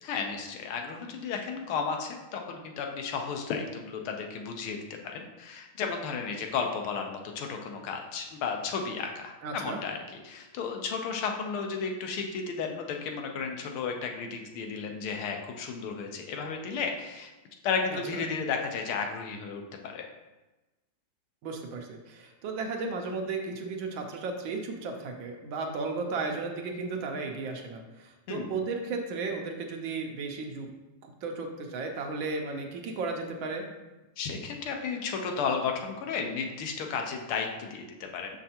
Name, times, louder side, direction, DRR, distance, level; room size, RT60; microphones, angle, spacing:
voice 1, 0.0-17.3 17.6-20.1 28.3-28.5 34.2-38.3, left 5 dB, 85° left, 3 dB, 1.7 m, -33 dB
voice 2, 9.4-9.8 17.9-18.2 21.4-30.7 31.2-33.7, right 3 dB, 70° right, 2 dB, 1.4 m, -34 dB
6.4 x 5.8 x 2.8 m, 1.1 s
omnidirectional pair, 2.3 m